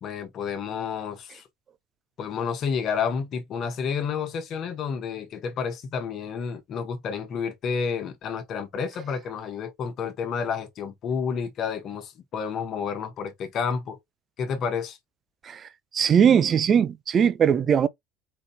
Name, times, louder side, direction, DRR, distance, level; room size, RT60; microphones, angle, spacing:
voice 1, 0.0-1.4 2.2-14.0 14.4-15.0, left 6 dB, 45° left, 1.4 m, -30 dB
voice 2, 15.4-17.9, right 8 dB, 35° right, 0.6 m, -20 dB
4.8 x 4.0 x 2.8 m
figure-of-eight pair, 65°, 0 cm